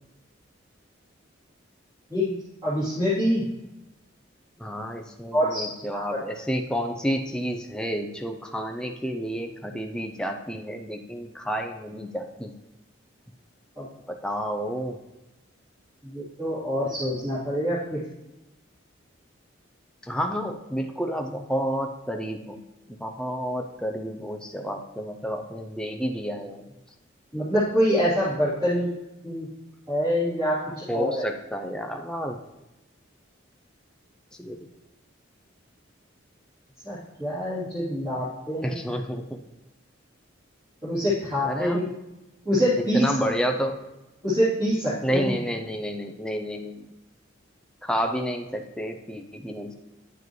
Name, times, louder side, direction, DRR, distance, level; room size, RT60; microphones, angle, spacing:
voice 1, 2.6-3.4 5.3-5.6 5.9-6.0 13.7-13.9 16.0-18.0 27.3-28.9 29.2-29.5 29.9-31.2 36.8-38.7 40.8-41.8 42.4-43.0 44.2-45.3, equal, 20° right, -15 dB, 3.0 m, -25 dB
voice 2, 4.6-12.5 14.1-15.0 20.0-22.6 22.9-26.6 30.9-32.4 34.4-34.6 38.6-39.4 41.5-41.9 42.9-43.8 45.0-46.9 47.8-49.7, equal, 5° left, 4 dB, 0.5 m, -30 dB
9.6 x 7.0 x 3.1 m, 0.97 s
head